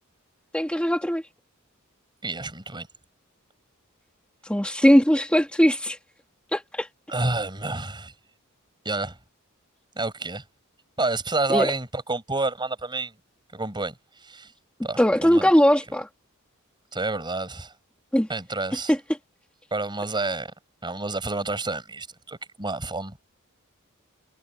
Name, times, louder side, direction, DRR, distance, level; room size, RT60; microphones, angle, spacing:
voice 1, 0.5-1.2 4.4-6.0 6.5-6.9 11.5-11.7 15.0-16.1 18.1-18.3 18.9-19.0, equal, 5° left, 1.8 m, -20 dB
voice 2, 2.2-2.9 7.1-8.1 8.8-9.2 10.0-10.4 11.0-13.1 13.5-13.9 14.2-14.5 14.8-15.5 16.9-17.7 18.3-18.9 19.7-20.5 20.8-23.2, right 2 dB, 20° right, 6.4 m, -29 dB
head